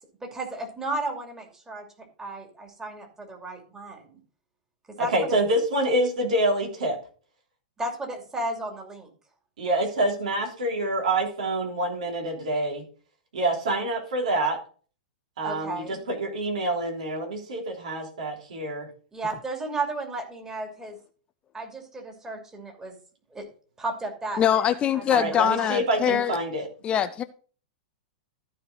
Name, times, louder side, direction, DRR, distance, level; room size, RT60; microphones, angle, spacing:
voice 1, 0.2-1.9 2.2-4.2 5.0-5.4 7.8-9.1 15.4-16.0 19.1-21.0 21.5-22.9 23.3-23.4 23.8-24.7 24.9-25.0 25.4-25.7, right 2 dB, 10° right, 2.7 m, -34 dB
voice 2, 5.0-7.0 9.6-12.8 13.3-14.6 15.4-18.9 25.1-26.7, right 1 dB, 65° right, 3.1 m, -26 dB
voice 3, 24.4-26.4 26.8-27.2, left 9 dB, 25° left, 0.5 m, -23 dB
14.0 x 5.0 x 3.9 m
figure-of-eight pair, 100°, 4 cm